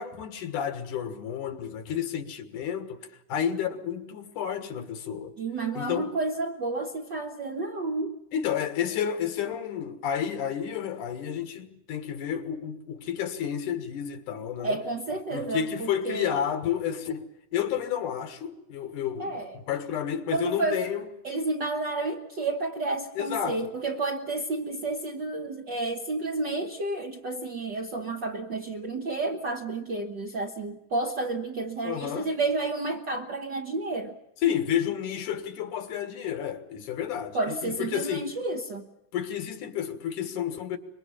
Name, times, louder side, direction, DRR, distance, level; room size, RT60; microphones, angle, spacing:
voice 1, 0.0-5.4 5.7-6.2 8.3-14.8 15.3-21.0 23.2-23.6 31.8-32.3 34.4-38.3 39.1-40.8, left 9 dB, 75° left, 3.0 m, -31 dB
voice 2, 5.4-8.2 14.6-16.3 19.2-19.5 20.3-20.8 21.2-34.2 37.3-38.8, right 3 dB, 55° right, 1.2 m, -31 dB
24.5 x 22.0 x 7.1 m
omnidirectional pair, 3.7 m